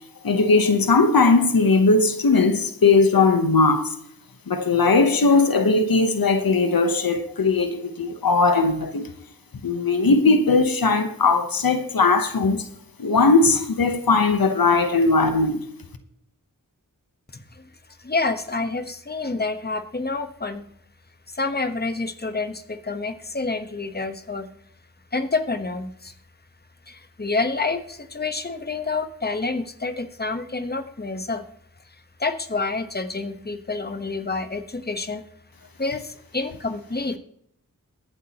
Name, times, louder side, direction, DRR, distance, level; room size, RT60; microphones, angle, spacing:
voice 1, 0.2-3.9 4.5-9.1 9.6-12.6 13.0-15.6, left 3 dB, 90° left, 1.0 m, -19 dB
voice 2, 17.3-17.7 18.0-20.6 21.3-24.5 25.1-26.1 26.9-31.5 32.2-35.2 35.8-37.2, left 3 dB, 30° left, 1.1 m, -28 dB
22.0 x 8.2 x 2.9 m
wide cardioid pair, 50°, 34 cm